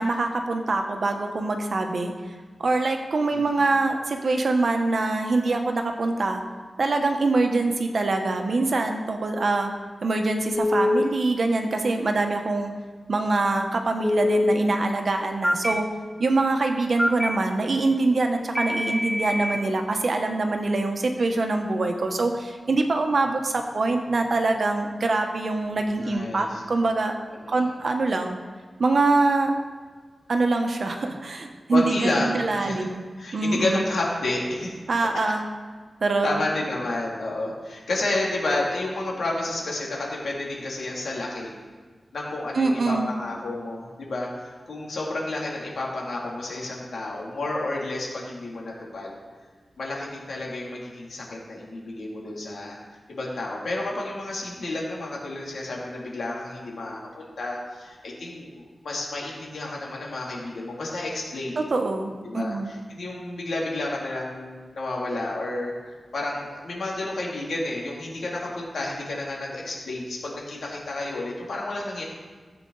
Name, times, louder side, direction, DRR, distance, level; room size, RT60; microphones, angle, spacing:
voice 1, 0.0-2.1 2.6-6.4 6.8-9.7 10.0-12.7 13.1-15.8 16.2-27.1 27.5-28.4 28.8-29.5 30.3-33.0 33.3-33.8 34.9-35.5 36.0-36.4 42.5-43.1 61.6-62.7, right 3 dB, 55° right, 4 dB, 1.1 m, -24 dB
voice 2, 3.3-3.6 26.0-26.6 27.3-27.7 31.7-32.8 33.2-34.8 36.2-41.5 42.1-49.1 49.8-52.8 53.1-61.6 62.2-72.0, left 2 dB, 80° left, -3 dB, 2.9 m, -31 dB
Telephone, 10.5-11.0 14.0-14.5 15.4-15.7 17.0-17.3 18.6-19.6, left 1 dB, 10° left, 0.7 m, -23 dB
14.5 x 8.0 x 4.0 m, 1.5 s
wide cardioid pair, 145°, 0 cm